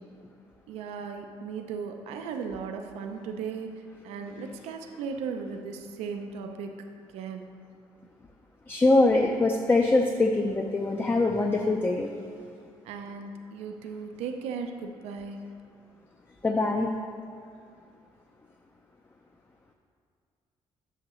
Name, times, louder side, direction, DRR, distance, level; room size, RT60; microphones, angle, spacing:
voice 1, 0.7-6.9 7.1-7.5 12.8-15.4, right 5 dB, 85° right, 5 dB, 0.5 m, -37 dB
voice 2, 8.7-12.1 16.4-16.9, left 2 dB, 20° left, 2 dB, 0.5 m, -23 dB
7.8 x 6.6 x 3.0 m, 2.4 s
cardioid pair, 100°, 10 cm